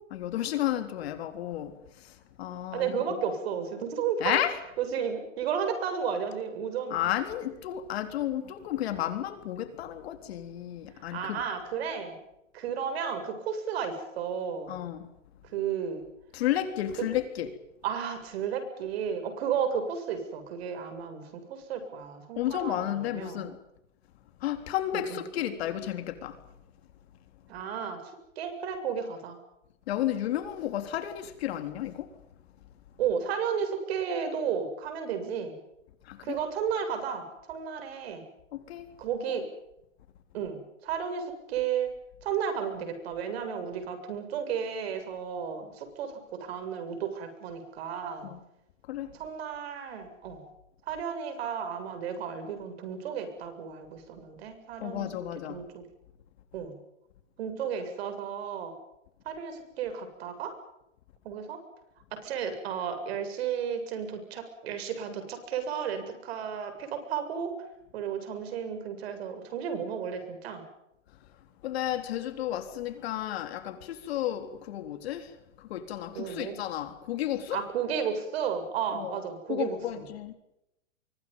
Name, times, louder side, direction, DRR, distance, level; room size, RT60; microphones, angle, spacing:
voice 1, 0.1-3.0 4.2-4.6 6.9-11.4 14.7-15.1 16.3-17.5 22.4-23.6 24.4-26.4 29.9-32.1 36.0-36.4 38.5-38.9 48.2-48.4 48.9-49.2 54.8-55.6 71.6-77.6 78.9-79.2 79.5-80.3, left 12 dB, 55° left, 3.8 m, -32 dB
voice 2, 2.7-4.4 4.8-7.0 11.0-12.2 12.5-14.7 15.5-16.0 17.0-17.1 17.8-23.5 24.9-25.3 27.5-28.0 28.4-29.4 33.0-35.6 36.2-38.3 39.0-39.5 40.3-41.9 42.2-48.3 49.1-50.4 50.9-55.1 55.5-55.8 56.5-56.8 57.4-58.7 59.2-60.5 61.2-61.6 62.1-67.5 67.9-70.7 76.1-76.6 77.5-80.1, right 7 dB, 50° right, 7.4 m, -33 dB
30.0 x 24.5 x 5.5 m
hypercardioid pair, 150°, 38 cm